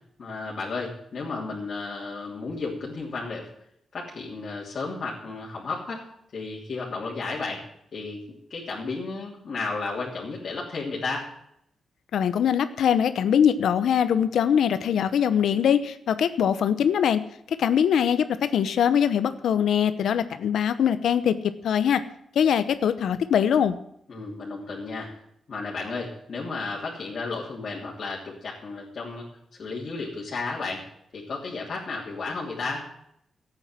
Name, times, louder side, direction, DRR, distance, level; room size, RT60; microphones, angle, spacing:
voice 1, 0.2-3.5 3.9-6.0 6.3-7.6 7.9-8.2 8.5-11.3 24.1-25.1 25.5-29.2 29.6-30.8 31.1-32.9, left 3 dB, 45° left, -5 dB, 3.2 m, -33 dB
voice 2, 12.1-17.2 17.5-22.0 22.3-23.7, left 8 dB, 80° left, 12 dB, 0.9 m, -22 dB
13.5 x 8.8 x 7.7 m, 0.74 s
wide cardioid pair, 150°, 0 cm